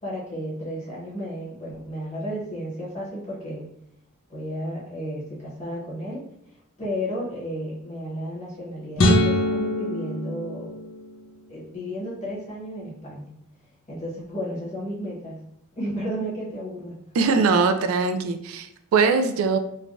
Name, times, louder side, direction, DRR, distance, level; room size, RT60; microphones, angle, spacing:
voice 1, 0.0-3.7 4.3-10.7 11.5-13.3 13.9-15.4 15.8-17.3, equal, 35° left, -6 dB, 1.0 m, -33 dB
sound 1, 9.0-11.3, left 1 dB, 80° left, 0.5 m, -23 dB
voice 2, 17.1-19.6, right 4 dB, 85° right, 9 dB, 0.3 m, -21 dB
3.2 x 2.2 x 2.5 m, 0.76 s
head